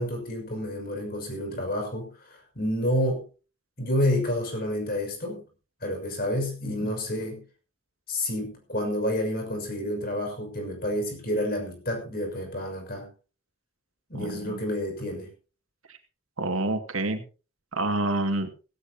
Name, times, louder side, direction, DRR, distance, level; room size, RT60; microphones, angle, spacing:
voice 1, 0.0-3.2 3.8-5.4 5.8-7.4 8.1-13.1 14.1-15.3, left 1 dB, 45° left, 3 dB, 6.2 m, -29 dB
voice 2, 14.1-14.6 15.9-16.0 16.4-17.2 17.7-18.5, right 2 dB, 85° right, 6 dB, 2.4 m, -28 dB
16.5 x 16.5 x 3.0 m, 0.35 s
head